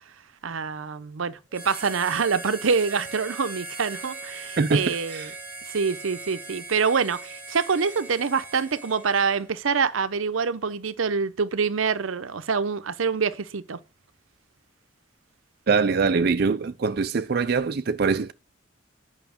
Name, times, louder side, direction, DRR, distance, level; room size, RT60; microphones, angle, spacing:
voice 1, 0.4-5.3 5.7-13.8, right 5 dB, 90° right, 0.7 m, -26 dB
Harmonica, 1.5-9.6, right 3 dB, 10° right, 1.7 m, -39 dB
voice 2, 4.6-5.3 15.7-18.3, right 4 dB, 50° right, 0.4 m, -23 dB
9.2 x 5.7 x 5.1 m
head